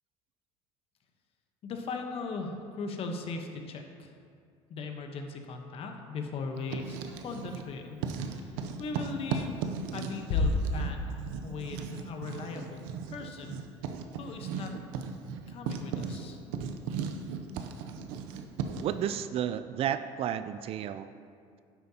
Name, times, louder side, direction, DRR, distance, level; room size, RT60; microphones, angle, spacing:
voice 1, 1.6-4.1 4.7-13.6 14.1-14.7 15.5-16.4, left 4 dB, 50° left, 4 dB, 1.0 m, -39 dB
Writing, 6.6-7.7 8.0-19.0, right 6 dB, 85° right, 0.7 m, -37 dB
sound 1, 10.3-11.7, left 2 dB, 70° left, 0.9 m, -30 dB
voice 2, 18.8-21.1, right 10 dB, 50° right, 12 dB, 0.4 m, -32 dB
10.5 x 7.8 x 2.9 m, 2.2 s
cardioid pair, 115°, 13 cm